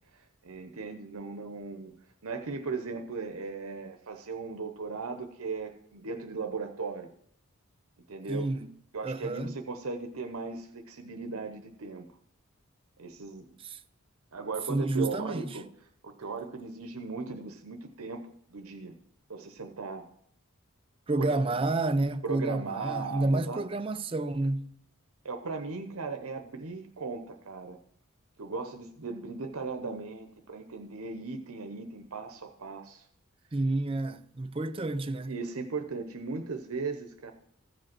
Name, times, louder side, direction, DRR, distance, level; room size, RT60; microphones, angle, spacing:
voice 1, 0.1-1.9 2.2-7.1 8.1-8.5 8.9-12.1 13.0-13.6 14.3-15.7 16.0-18.2 18.5-18.9 19.3-20.1 21.2-21.6 22.2-23.6 25.2-27.8 28.4-33.1 35.3-37.3, right 4 dB, 80° right, 0.8 m, -37 dB
voice 2, 8.3-8.7 9.0-9.5 13.6-13.8 14.7-15.6 21.1-24.8 33.5-35.3, right 2 dB, 25° right, 0.4 m, -30 dB
14.5 x 5.2 x 6.0 m
head